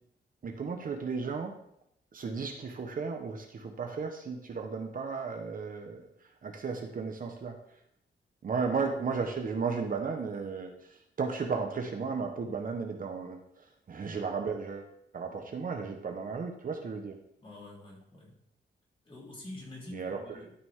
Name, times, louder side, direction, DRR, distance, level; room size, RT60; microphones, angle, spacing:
voice 1, 0.4-1.6 2.1-6.0 6.4-7.6 8.4-17.2 19.9-20.4, right 5 dB, 45° right, 3 dB, 1.1 m, -34 dB
voice 2, 17.4-18.3 19.0-20.5, left 1 dB, 25° left, -4 dB, 3.4 m, -46 dB
13.0 x 6.0 x 3.6 m, 0.72 s
wide cardioid pair, 140°, 19 cm